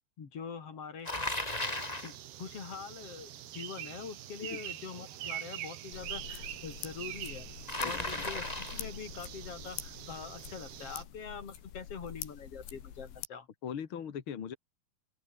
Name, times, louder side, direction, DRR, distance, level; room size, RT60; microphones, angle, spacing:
voice 1, 0.2-1.1 2.0-7.5 7.8-13.5, left 6 dB, 40° left, 3.4 m, -44 dB
Bicycle, 1.0-2.2 7.7-8.9, left 2 dB, 10° left, 2.5 m, -35 dB
sound 1, 1.6-11.0, right 12 dB, 70° right, 3.6 m, -45 dB
sound 2, 5.9-13.3, left 10 dB, 90° left, 4.9 m, -46 dB
voice 2, 7.8-8.2 13.6-14.5, left 8 dB, 55° left, 1.5 m, -40 dB
open air
omnidirectional pair, 5.0 m